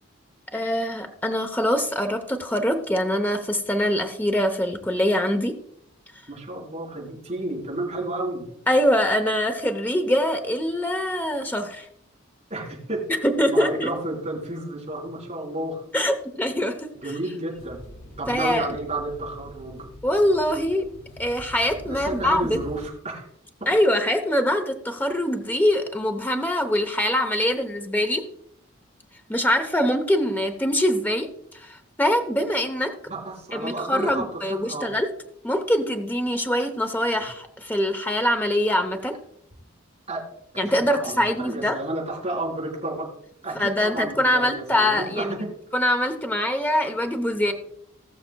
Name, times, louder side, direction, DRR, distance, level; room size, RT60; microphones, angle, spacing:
voice 1, 0.5-5.5 8.7-11.9 13.2-13.9 15.9-16.9 18.3-18.7 20.0-20.8 21.2-22.6 23.7-28.2 29.3-31.3 31.5-32.9 33.5-35.1 35.4-39.2 40.6-41.8 43.5-45.3 45.7-47.5, equal, 10° left, 5 dB, 0.7 m, -23 dB
voice 2, 6.3-8.5 12.5-13.0 13.5-15.8 17.0-17.8 18.2-19.9 21.9-23.2 33.1-34.9 37.1-37.2 40.1-40.3 40.9-43.1 43.4-45.5, right 2 dB, 30° right, -4 dB, 4.4 m, -31 dB
sound 1, 17.5-22.9, equal, 80° left, 1.7 m, -43 dB
19.5 x 6.8 x 2.2 m, 0.71 s
head